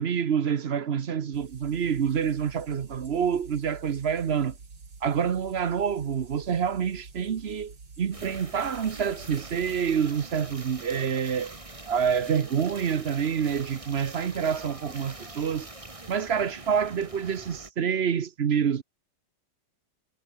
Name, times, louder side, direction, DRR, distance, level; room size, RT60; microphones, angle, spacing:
voice 1, 0.0-4.5 5.0-11.6 11.9-15.7 16.1-18.8, right 7 dB, 45° right, 0.8 m, -27 dB
sound 1, 1.3-10.0, right 4 dB, 70° right, 4.3 m, -47 dB
sound 2, 8.1-17.7, right 2 dB, 15° right, 2.1 m, -44 dB
omnidirectional pair, 2.1 m